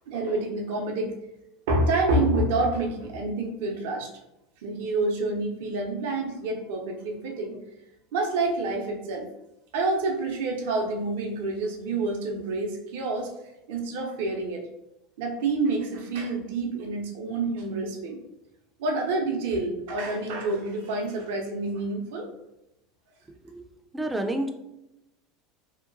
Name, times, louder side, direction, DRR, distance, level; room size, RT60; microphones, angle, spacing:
voice 1, 0.1-1.2 1.7-4.1 4.6-7.6 8.1-9.3 9.7-13.3 13.7-14.7 15.2-18.2 18.8-22.3, right 2 dB, 65° right, 1 dB, 0.5 m, -28 dB
voice 2, 23.9-24.5, right 1 dB, 10° right, 5 dB, 0.4 m, -29 dB
2.8 x 2.2 x 2.5 m, 0.88 s
hypercardioid pair, 80°, 0 cm